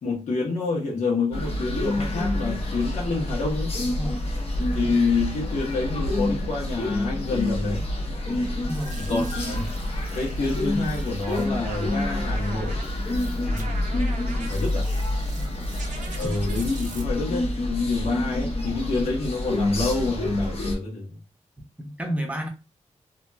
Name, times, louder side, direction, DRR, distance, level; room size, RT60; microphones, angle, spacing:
voice 1, 0.0-3.7 4.7-7.9 9.0-9.7 10.1-12.9 13.4-13.7 14.5-14.9 16.1-21.2, left 3 dB, 90° left, 0.9 m, -28 dB
sound 1, 1.3-20.8, left 1 dB, 55° left, 0.8 m, -27 dB
voice 2, 8.7-9.7 15.3-15.7 16.1-16.3 21.8-22.5, equal, 10° right, 0.7 m, -33 dB
sound 2, 8.7-17.0, right 3 dB, 85° right, 0.6 m, -42 dB
2.8 x 2.5 x 2.2 m
wide cardioid pair, 105°, 12 cm